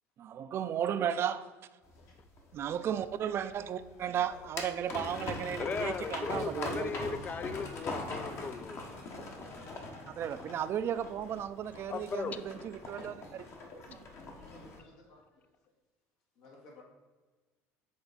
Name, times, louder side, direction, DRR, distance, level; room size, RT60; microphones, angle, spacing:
voice 1, 0.2-1.5 2.5-6.9 10.1-13.4, right 9 dB, 45° right, 0.4 m, -35 dB
sound 1, 1.9-14.8, left 2 dB, 45° left, 1.2 m, -42 dB
voice 2, 5.6-9.3 11.9-12.4, left 5 dB, 25° left, 0.3 m, -37 dB
voice 3, 13.7-14.1 14.3-15.4 16.4-16.8, left 2 dB, 75° left, 1.8 m, -58 dB
7.9 x 3.4 x 4.1 m
supercardioid pair, 110°, 6 cm